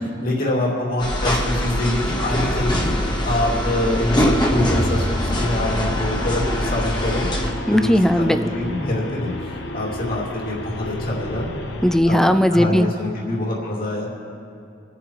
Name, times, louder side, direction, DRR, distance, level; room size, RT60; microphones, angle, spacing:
voice 1, 0.2-2.9 3.2-7.3 7.7-11.5 12.0-12.2 12.5-14.1, left 1 dB, 55° left, -4 dB, 2.5 m, -25 dB
sound 1, 1.0-7.5, left 1 dB, 25° left, 1.3 m, -22 dB
sound 2, 5.3-12.0, left 1 dB, 85° left, 0.9 m, -31 dB
voice 2, 7.7-8.5 11.8-12.9, equal, 5° left, 8 dB, 0.5 m, -17 dB
28.5 x 9.6 x 3.1 m, 2.4 s
head